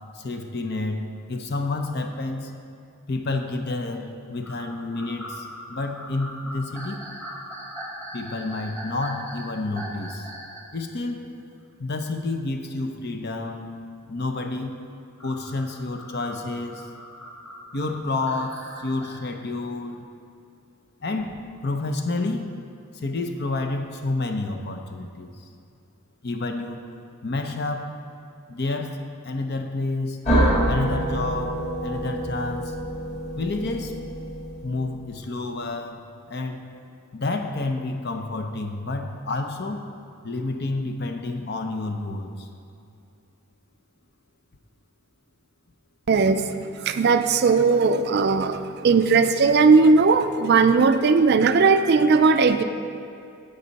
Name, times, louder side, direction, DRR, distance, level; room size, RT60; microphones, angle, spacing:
voice 1, 0.1-2.5 3.1-7.0 8.1-10.3 10.7-11.2 11.8-13.7 14.1-14.8 15.2-16.9 17.7-20.1 21.0-22.4 22.9-25.4 26.2-26.8 27.2-28.0 28.5-29.0 29.2-30.2 30.7-32.8 33.4-33.9 34.6-36.6 37.1-39.9 40.2-42.5, left 2 dB, 50° left, 5 dB, 0.7 m, -29 dB
sound 1, 4.4-10.7 11.2-11.3 12.7-12.8 15.2-19.2, equal, 10° left, 1.2 m, -40 dB
sound 2, 30.3-35.0, right 1 dB, 30° left, 2.3 m, -26 dB
voice 2, 46.1-46.4 46.8-52.6, right 4 dB, 50° right, 10 dB, 0.4 m, -18 dB
15.5 x 5.4 x 4.1 m, 2.6 s
head